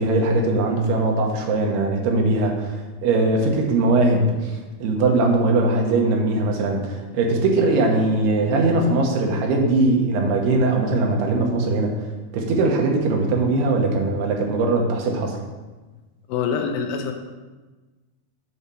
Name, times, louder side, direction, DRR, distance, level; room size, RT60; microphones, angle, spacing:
voice 1, 0.0-2.7 3.0-4.5 4.8-11.9 12.3-15.4, right 2 dB, 90° right, 1 dB, 3.2 m, -20 dB
voice 2, 16.3-17.1, left 6 dB, 80° left, 4 dB, 2.3 m, -25 dB
7.9 x 4.3 x 6.8 m, 1.3 s
omnidirectional pair, 4.5 m